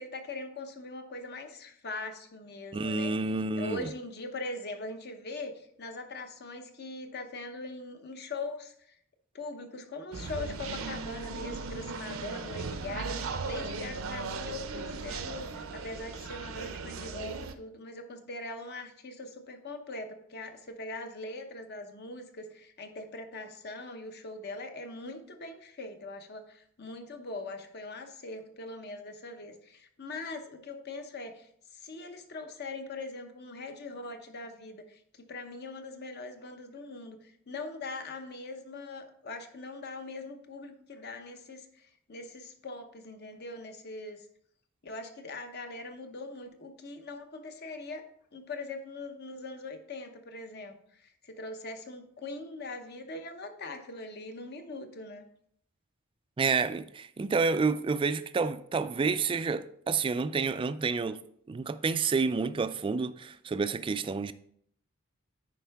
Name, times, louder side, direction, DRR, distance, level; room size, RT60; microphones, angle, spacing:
voice 1, 0.0-3.1 3.6-9.0 9.3-44.3 44.8-48.0 48.3-55.3, left 2 dB, 50° left, 0.9 m, -41 dB
voice 2, 2.7-3.9 56.4-61.2 61.5-64.3, right 4 dB, 25° right, 0.3 m, -29 dB
sound 1, 10.1-17.5, right 4 dB, 70° right, 0.6 m, -37 dB
10.0 x 4.5 x 3.5 m
head